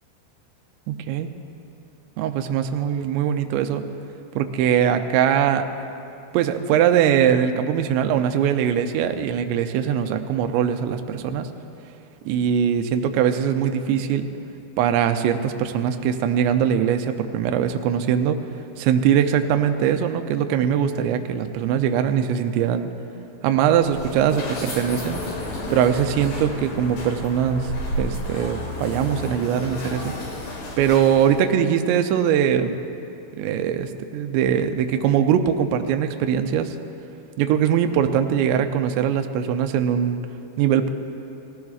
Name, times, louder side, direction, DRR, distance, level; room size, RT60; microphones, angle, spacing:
voice 1, 0.9-1.3 2.2-3.9 4.4-5.7 6.3-11.5 12.3-14.3 14.8-18.4 18.8-22.9 23.4-25.2 25.7-27.7 28.0-30.2 30.8-32.8 33.4-36.8 37.4-40.2 40.6-40.9, right 9 dB, 85° right, 7 dB, 2.5 m, -21 dB
sound 1, 23.7-31.5, left 1 dB, 90° left, 4.7 m, -32 dB
19.5 x 15.0 x 2.4 m, 2.7 s
omnidirectional pair, 5.6 m